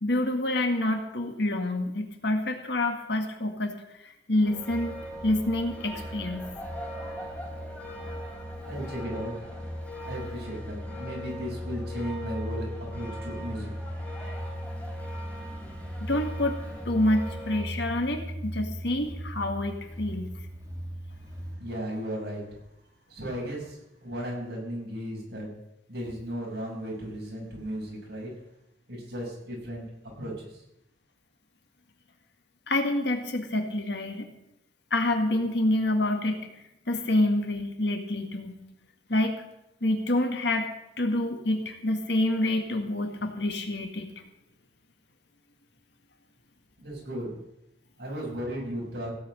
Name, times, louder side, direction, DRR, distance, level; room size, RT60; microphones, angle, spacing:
voice 1, 0.0-5.0 5.2-6.5 16.0-16.6 16.9-20.4 32.7-34.3 34.9-38.6 39.1-39.4 39.8-40.7 41.0-44.1, left 1 dB, 70° left, 4 dB, 1.9 m, -27 dB
sound 1, 4.4-17.7, equal, 5° left, 3.7 m, -41 dB
sound 2, 4.7-21.6, equal, 20° right, 2.4 m, -38 dB
voice 2, 8.6-9.3 10.0-13.7 21.6-22.6 23.1-25.5 25.9-28.3 28.9-29.8 30.2-30.6 46.8-47.3 48.0-49.1, equal, 65° right, -3 dB, 6.4 m, -35 dB
16.5 x 6.1 x 9.0 m, 0.84 s
head